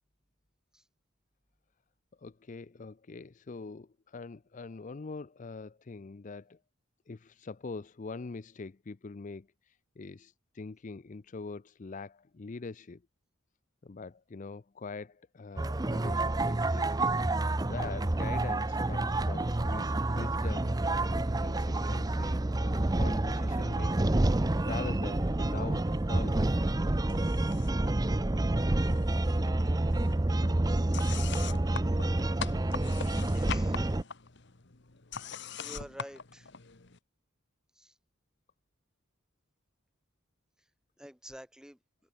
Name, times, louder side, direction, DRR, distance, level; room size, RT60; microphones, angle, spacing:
voice 1, 2.2-6.6 7.1-13.0 13.8-17.0 17.6-26.5, left 4 dB, 40° left, 0.5 m, -43 dB
sound 1, 15.6-34.0, right 2 dB, 20° right, 0.6 m, -28 dB
sound 2, 27.1-27.9 28.2-29.2 29.5-37.0, left 6 dB, 55° left, 1.5 m, -42 dB
voice 2, 33.3-33.9 35.6-36.5 37.8-37.9 41.0-41.8, equal, 5° right, 2.8 m, -48 dB
head